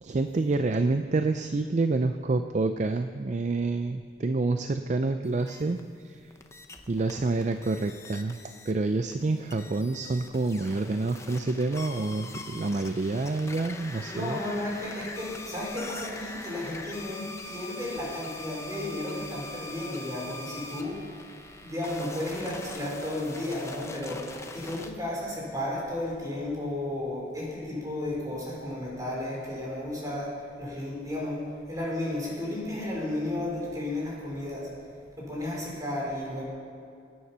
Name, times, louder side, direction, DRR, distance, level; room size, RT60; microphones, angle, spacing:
voice 1, 0.0-5.8 6.0-6.2 6.9-8.4 8.7-14.4, right 3 dB, 40° right, 8 dB, 0.4 m, -28 dB
sound 1, 5.2-5.8 6.3-8.7 9.1-24.9, left 2 dB, 15° left, 0.8 m, -43 dB
voice 2, 14.1-21.0 21.6-34.7 35.2-36.4, left 1 dB, 20° right, -4 dB, 4.2 m, -33 dB
20.0 x 9.5 x 5.6 m, 2.4 s
head